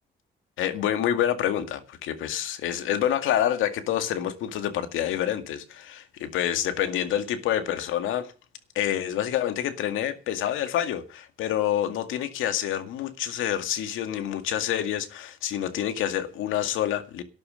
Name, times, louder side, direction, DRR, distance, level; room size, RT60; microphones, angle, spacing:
voice 1, 0.6-8.3 8.8-17.2, left 11 dB, 90° left, 2.1 m, -27 dB
12.5 x 11.5 x 6.5 m
cardioid pair, 90°, 20 cm